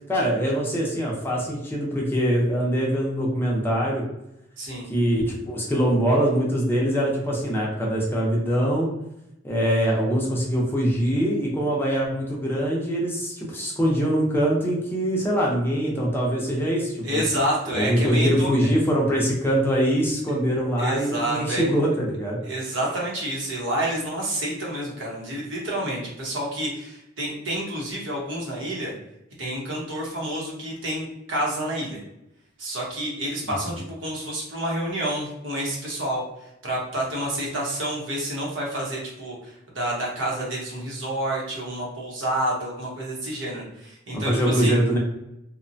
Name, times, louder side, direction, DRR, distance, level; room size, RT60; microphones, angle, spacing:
voice 1, 0.1-4.0 4.9-8.9 9.4-17.2 17.7-22.4 44.1-45.0, equal, 10° left, -3 dB, 0.6 m, -23 dB
voice 2, 4.6-4.9 17.0-18.7 20.8-21.7 22.4-28.9 29.4-32.0 32.6-36.2 36.6-44.7, right 1 dB, 80° right, -3 dB, 0.9 m, -29 dB
2.8 x 2.1 x 2.6 m, 0.85 s
head